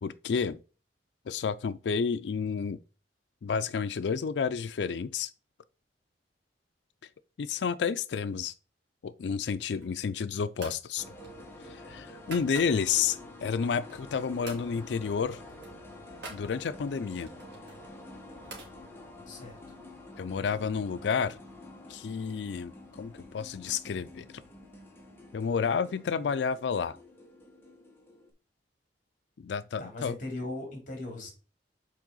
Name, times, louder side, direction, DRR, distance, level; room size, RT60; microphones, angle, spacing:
voice 1, 0.0-0.6 1.3-2.8 3.4-5.3 7.4-8.5 9.0-11.0 11.7-15.4 16.3-17.3 20.2-21.4 21.9-24.3 25.3-27.0 29.4-30.1, left 6 dB, 80° left, 0.4 m, -30 dB
sound 1, 9.6-10.1 10.5-10.9 11.2-13.0 13.5-14.2 14.4-14.7 15.0-15.1 15.4-16.5 17.2-18.7, right 3 dB, 75° right, 2.7 m, -47 dB
sound 2, 11.0-28.3, left 1 dB, 15° left, 1.5 m, -48 dB
voice 2, 19.3-19.6 29.8-31.3, left 2 dB, 50° left, 3.0 m, -38 dB
7.4 x 4.6 x 3.9 m
head